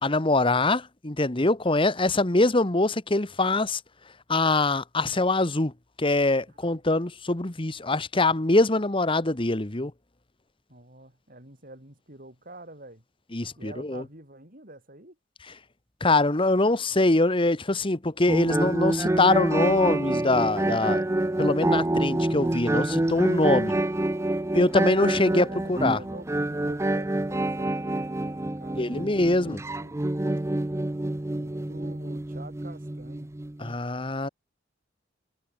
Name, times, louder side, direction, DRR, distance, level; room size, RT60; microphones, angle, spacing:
voice 1, 0.0-3.8 4.3-5.7 6.0-9.9 13.3-14.0 16.0-21.0 21.4-23.7 24.5-26.0 28.8-29.6 33.6-34.3, left 2 dB, 25° left, 1.3 m, -23 dB
voice 2, 6.5-6.8 10.7-13.0 13.6-15.2 22.0-22.5 25.0-30.0 31.4-33.3, right 1 dB, 45° right, 7.4 m, -47 dB
sound 1, 18.3-33.7, right 1 dB, 15° right, 0.5 m, -27 dB
head